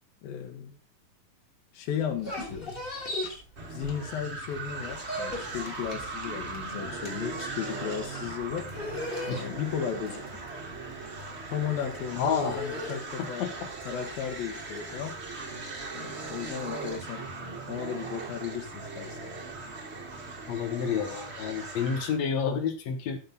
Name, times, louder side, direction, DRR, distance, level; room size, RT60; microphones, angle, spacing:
voice 1, 0.2-0.8 1.7-2.7 3.7-8.7 9.3-10.4 11.5-13.5 13.8-15.2 15.9-17.3 17.7-19.4, left 8 dB, 85° left, 5 dB, 3.1 m, -35 dB
sound 1, 2.0-4.4 4.7-17.0, left 2 dB, 20° left, 2.2 m, -39 dB
sound 2, 3.6-22.2, right 3 dB, 60° right, 0.7 m, -39 dB
voice 2, 12.2-12.6 13.2-13.5 20.5-23.2, left 6 dB, 60° left, 7 dB, 2.3 m, -29 dB
13.5 x 5.6 x 4.0 m, 0.34 s
omnidirectional pair, 4.0 m